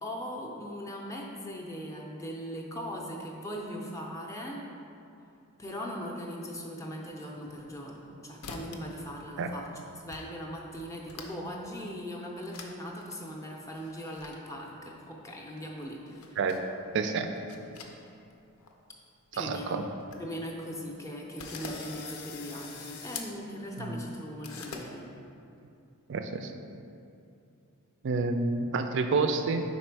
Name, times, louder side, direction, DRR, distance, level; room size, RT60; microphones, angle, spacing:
voice 1, 0.0-4.6 5.6-9.7 10.0-16.4 19.3-19.9 20.2-25.0, equal, 15° left, -1 dB, 0.4 m, -39 dB
sound 1, 7.5-8.1 8.4-8.9 9.2-9.7 10.1-10.2 10.5-11.5 11.9-12.0 12.5-12.7 13.0-13.1 13.8-14.4 15.6-16.7 17.2-18.3 18.6-18.7 19.3-19.4 19.6-19.7 19.9-20.2 20.7-20.8 21.4-23.3 24.4-24.8, left 5 dB, 85° left, 0.6 m, -43 dB
voice 2, 16.9-17.3 19.4-19.8 23.8-24.0 26.1-26.5 28.0-29.6, right 4 dB, 55° right, 6 dB, 0.4 m, -29 dB
4.9 x 4.2 x 4.5 m, 2.6 s
head